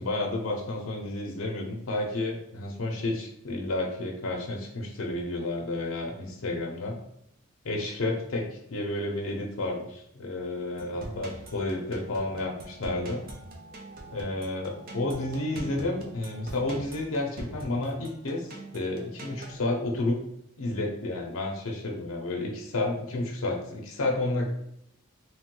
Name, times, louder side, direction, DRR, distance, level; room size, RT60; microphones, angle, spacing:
voice 1, 0.0-7.0 7.6-8.4 8.7-13.2 14.1-18.5 18.7-20.2 20.6-24.5, left 2 dB, 85° left, 0 dB, 0.5 m, -31 dB
sound 1, 10.8-19.6, right 2 dB, 45° right, 0.5 m, -43 dB
3.0 x 2.2 x 3.0 m, 0.75 s
head